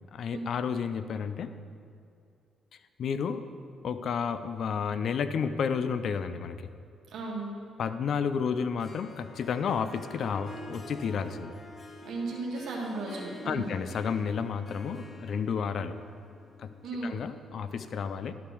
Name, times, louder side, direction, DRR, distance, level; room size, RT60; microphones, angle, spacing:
voice 1, 0.1-1.5 3.0-3.5 3.8-6.7 7.8-11.6 13.5-16.0 16.6-16.7 17.0-18.3, left 6 dB, 60° left, 11 dB, 0.6 m, -31 dB
voice 2, 7.1-7.5 12.0-13.7 16.8-17.2, right 3 dB, 75° right, -2 dB, 1.7 m, -35 dB
Harp, 8.6-17.5, left 1 dB, 35° left, 1.1 m, -47 dB
12.0 x 5.8 x 6.3 m, 2.4 s
cardioid pair, 90°, 0 cm